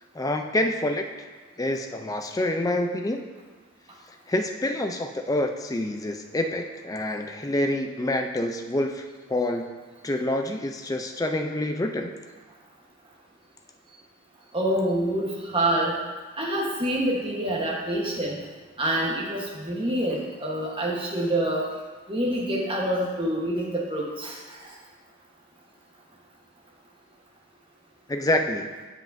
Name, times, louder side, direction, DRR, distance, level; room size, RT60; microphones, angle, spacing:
voice 1, 0.1-1.0 1.6-3.3 4.3-9.7 10.0-12.1 28.1-28.7, left 1 dB, 15° left, 5 dB, 0.4 m, -27 dB
voice 2, 14.5-16.0 16.4-18.4 18.8-21.7 22.1-24.3, right 1 dB, 25° right, -3 dB, 1.1 m, -26 dB
7.6 x 7.4 x 2.6 m, 1.4 s
head